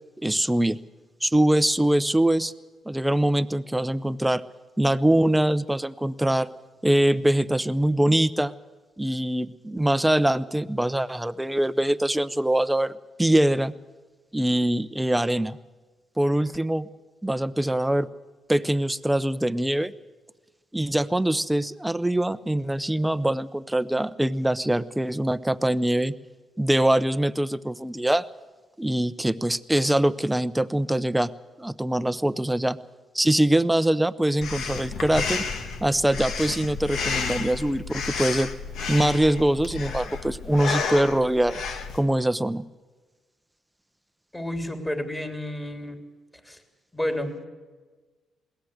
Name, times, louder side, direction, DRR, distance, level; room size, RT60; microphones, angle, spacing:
voice 1, 0.2-0.8 1.2-2.5 2.9-4.4 4.8-6.5 6.8-8.5 9.0-12.9 13.2-13.7 14.3-15.6 16.2-16.9 17.2-18.1 18.5-19.9 20.7-26.1 26.6-28.2 28.8-31.3 31.6-32.8 33.1-35.4 35.8-38.5 38.9-41.6 41.9-42.6, right 1 dB, 5° right, 14 dB, 0.7 m, -23 dB
Breathing, 34.4-42.0, left 5 dB, 75° left, 1.9 m, -31 dB
voice 2, 44.3-46.0 46.4-46.6 46.9-47.5, left 1 dB, 15° left, 5 dB, 3.3 m, -30 dB
21.5 x 17.5 x 8.0 m, 1.3 s
cardioid pair, 90°, 0 cm